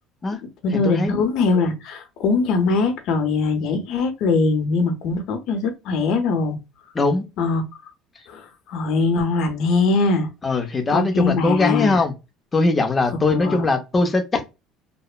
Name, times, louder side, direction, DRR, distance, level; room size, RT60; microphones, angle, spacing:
voice 1, 0.6-6.6 7.4-7.6 8.3-10.3 10.9-12.0 13.3-13.7, left 4 dB, 55° left, 0.7 m, -21 dB
voice 2, 10.4-12.1 12.5-14.5, left 3 dB, 15° left, 0.5 m, -20 dB
2.9 x 2.0 x 2.3 m
cardioid pair, 165°, 0 cm